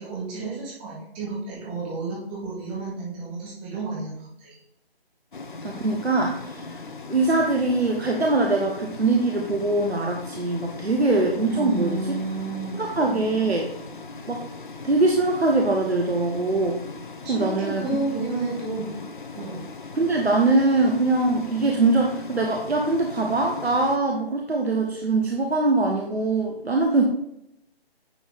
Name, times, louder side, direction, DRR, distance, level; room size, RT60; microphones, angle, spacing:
voice 1, 0.0-4.6 11.5-12.8 17.2-18.9 19.3-19.6, right 3 dB, 10° right, -6 dB, 1.2 m, -31 dB
sound 1, 5.3-24.0, left 3 dB, 50° left, 0.7 m, -39 dB
voice 2, 5.6-12.0 12.7-13.7 14.3-14.4 14.8-16.8 17.3-18.1 19.9-27.1, right 2 dB, 85° right, 1 dB, 1.1 m, -22 dB
9.6 x 3.4 x 4.0 m, 0.77 s
figure-of-eight pair, 155°, 31 cm